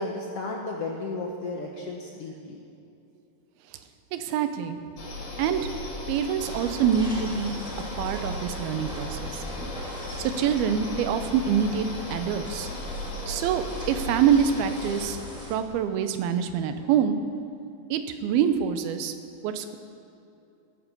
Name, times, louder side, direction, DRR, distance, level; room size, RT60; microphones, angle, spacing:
voice 1, 0.0-2.6, left 2 dB, 75° left, 0 dB, 1.3 m, -33 dB
voice 2, 4.1-4.8 5.4-5.7 6.1-7.6 8.0-9.4 10.2-12.7 13.3-15.2 15.5-17.2 17.9-19.2 19.4-19.8, right 8 dB, 85° right, 9 dB, 2.7 m, -25 dB
sound 1, 5.0-15.1, left 1 dB, 45° left, 2.7 m, -36 dB
sound 2, 6.4-15.6, left 1 dB, ahead, 1.1 m, -41 dB
15.5 x 12.0 x 5.3 m, 2.7 s
omnidirectional pair, 4.3 m